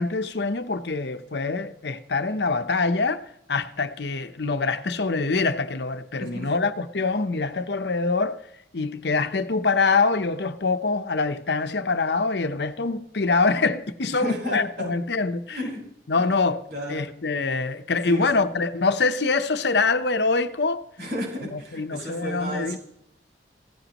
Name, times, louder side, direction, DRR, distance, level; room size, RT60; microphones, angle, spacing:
voice 1, 0.0-3.2 3.5-8.4 8.7-15.6 16.1-16.6 16.9-20.8 21.4-22.8, left 3 dB, 70° left, 0.8 m, -24 dB
voice 2, 14.1-14.6 15.5-15.8 16.1-16.3 16.7-17.0 18.1-18.4 21.0-22.8, equal, 65° right, 6.2 m, -33 dB
16.5 x 16.0 x 3.0 m
head